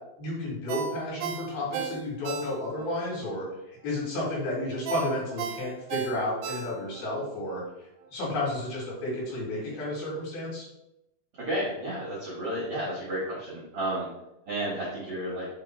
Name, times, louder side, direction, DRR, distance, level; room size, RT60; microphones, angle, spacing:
voice 1, 0.2-10.6, left 1 dB, 60° left, -5 dB, 3.4 m, -32 dB
Ringtone, 0.7-2.9 3.3-3.4 4.9-7.1 7.5-7.6, right 6 dB, 85° right, 2.9 m, -34 dB
voice 2, 11.4-14.1 14.5-15.4, right 1 dB, 70° right, -7 dB, 1.4 m, -32 dB
6.8 x 3.3 x 4.4 m, 0.87 s
omnidirectional pair, 5.3 m